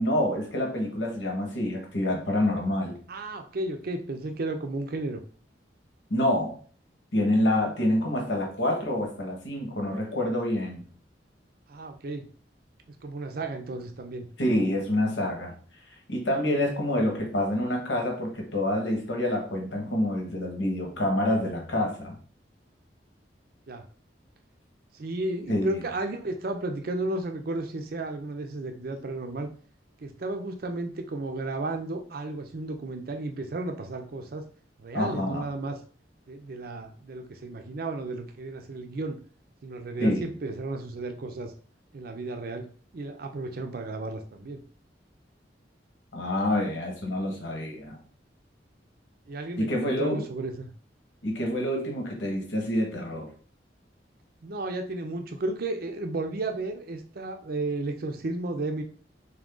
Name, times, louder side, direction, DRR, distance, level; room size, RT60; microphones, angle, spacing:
voice 1, 0.0-3.0 6.1-6.5 7.1-10.8 14.4-15.5 16.1-22.1 25.5-25.8 34.9-35.4 40.0-40.2 46.1-48.0 49.6-50.2 51.2-53.3, left 1 dB, 85° left, 0 dB, 1.3 m, -27 dB
voice 2, 3.1-5.2 11.7-12.2 13.0-14.3 23.7-23.8 24.9-29.5 30.0-34.5 34.8-35.8 36.3-39.2 39.6-41.5 41.9-42.7 42.9-44.6 49.3-50.7 54.4-58.8, right 2 dB, 55° right, 5 dB, 0.5 m, -33 dB
3.6 x 2.7 x 3.7 m, 0.42 s
head